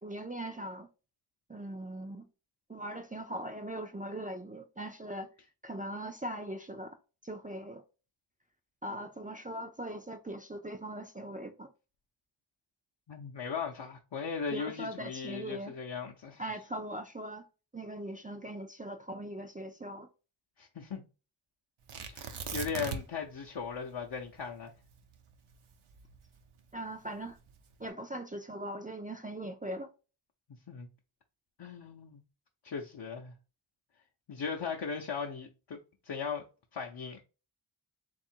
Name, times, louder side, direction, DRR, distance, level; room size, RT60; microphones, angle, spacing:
voice 1, 0.0-0.9 1.5-2.2 2.7-5.3 5.6-7.0 7.2-7.8 8.8-11.7 14.5-15.7 16.4-17.5 17.7-20.1 26.7-27.4 27.8-29.9, right 1 dB, 20° right, 0.4 m, -40 dB
voice 2, 13.1-16.4 20.6-21.0 22.1-24.7 30.7-30.9 31.6-32.2 32.6-33.3 34.3-35.8 36.0-36.4 36.7-37.2, left 6 dB, 55° left, 0.7 m, -38 dB
Tearing, 21.9-23.3 23.6-23.7 24.2-26.6 27.3-27.7, right 6 dB, 75° right, 0.7 m, -40 dB
3.5 x 2.5 x 4.3 m
wide cardioid pair, 75°, 49 cm